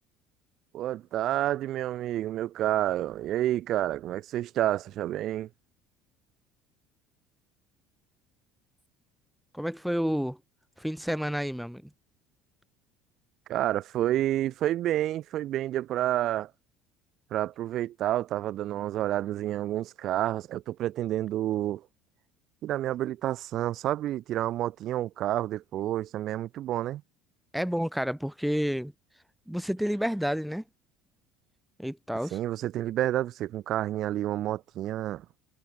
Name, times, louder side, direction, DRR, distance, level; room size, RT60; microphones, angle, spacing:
voice 1, 0.7-5.5 13.5-16.5 17.3-21.8 22.6-27.0 32.3-35.3, right 13 dB, 55° right, 3.6 m, -29 dB
voice 2, 9.5-10.4 10.8-11.8 27.5-28.9 29.5-30.6 31.8-32.4, equal, ahead, 5.7 m, -30 dB
cardioid pair, 120°, 0 cm